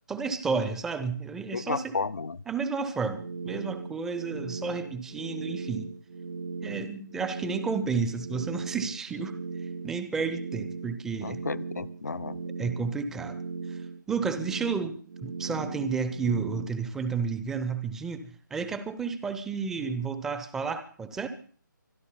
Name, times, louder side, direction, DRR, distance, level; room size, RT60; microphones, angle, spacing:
voice 1, 0.1-1.8 2.5-5.9 6.6-9.3 9.8-11.4 12.6-13.4 13.7-13.8 14.1-14.9 15.2-21.3, right 5 dB, 5° right, 11 dB, 0.8 m, -31 dB
voice 2, 1.5-2.4 11.2-12.4, left 4 dB, 55° left, 17 dB, 0.8 m, -32 dB
sound 1, 3.1-16.7, right 4 dB, 40° right, 0.7 m, -38 dB
25.0 x 11.0 x 4.1 m, 0.43 s
figure-of-eight pair, 145°, 11 cm